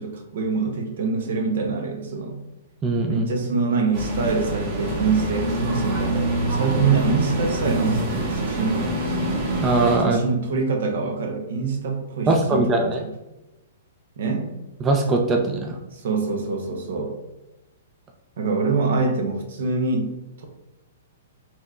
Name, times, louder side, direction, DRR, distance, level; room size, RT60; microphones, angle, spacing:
voice 1, 0.0-2.4 3.1-9.0 10.0-13.1 14.2-14.6 15.9-17.1 18.4-20.1 20.4-20.5, right 4 dB, 70° right, 4 dB, 0.8 m, -25 dB
voice 2, 2.8-3.2 9.6-10.2 12.3-13.0 14.8-15.8, right 2 dB, 20° right, 2 dB, 0.4 m, -20 dB
sound 1, 3.9-10.0, right 1 dB, 40° right, 1.2 m, -26 dB
4.3 x 2.9 x 2.4 m, 0.97 s
hypercardioid pair, 140°, 0 cm